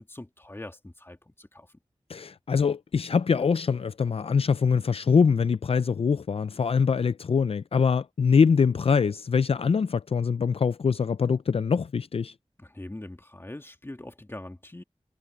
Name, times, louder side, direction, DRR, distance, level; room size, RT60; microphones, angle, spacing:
voice 1, 0.0-1.7 12.6-14.8, left 1 dB, 25° left, 2.2 m, -42 dB
voice 2, 2.1-12.3, left 6 dB, 70° left, 0.4 m, -23 dB
wide cardioid pair, 80°, 10 cm